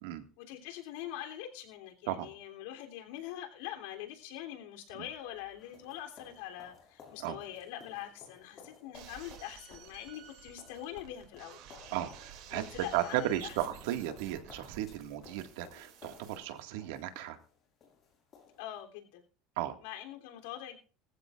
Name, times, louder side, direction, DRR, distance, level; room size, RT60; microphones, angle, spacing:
voice 1, 0.4-11.6 12.5-13.6 18.6-19.2 19.8-20.8, left 12 dB, 90° left, 3.2 m, -44 dB
sound 1, 5.1-18.8, left 6 dB, 30° left, 5.8 m, -58 dB
sound 2, 8.9-16.4, right 9 dB, 55° right, 2.7 m, -53 dB
voice 2, 11.9-17.4 19.6-19.8, right 12 dB, 80° right, 1.9 m, -35 dB
20.5 x 14.5 x 2.5 m
cardioid pair, 175°, 0 cm